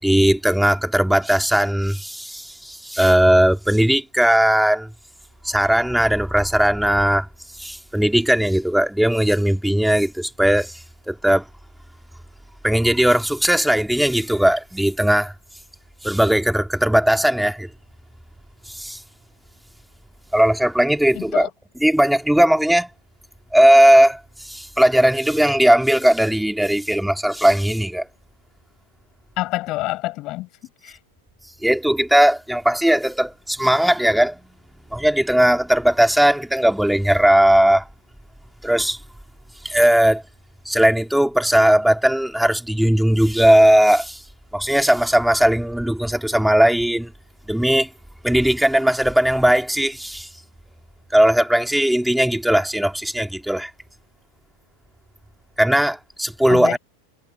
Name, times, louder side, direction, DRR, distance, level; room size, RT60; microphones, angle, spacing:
voice 1, 0.0-4.9 5.4-7.3 7.6-10.8 11.1-11.4 12.6-15.3 16.0-17.7 18.7-19.0 20.3-21.5 21.8-22.9 23.5-28.1 31.6-34.4 34.9-37.9 38.6-39.0 39.6-40.2 40.6-44.2 44.5-47.1 47.5-47.9 48.2-50.3 51.1-53.7 55.6-56.8, right 1 dB, ahead, 3.3 m, -18 dB
voice 2, 21.2-21.5 29.4-30.5 30.8-31.0 56.5-56.8, left 18 dB, 40° left, 7.0 m, -27 dB
figure-of-eight pair, 90°, 0 cm